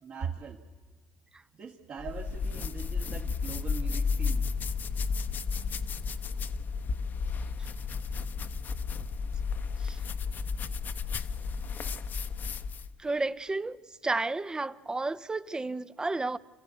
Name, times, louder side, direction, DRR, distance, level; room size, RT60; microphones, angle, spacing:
voice 1, 0.0-0.6 1.5-4.5 5.5-5.8 6.1-6.2, right 6 dB, 50° right, 2.0 m, -41 dB
sound 1, 2.0-12.9, left 5 dB, 50° left, 1.0 m, -33 dB
voice 2, 13.0-13.8 14.0-16.4, right 3 dB, 20° right, 0.7 m, -31 dB
27.5 x 14.5 x 8.4 m
supercardioid pair, 80°, 4 cm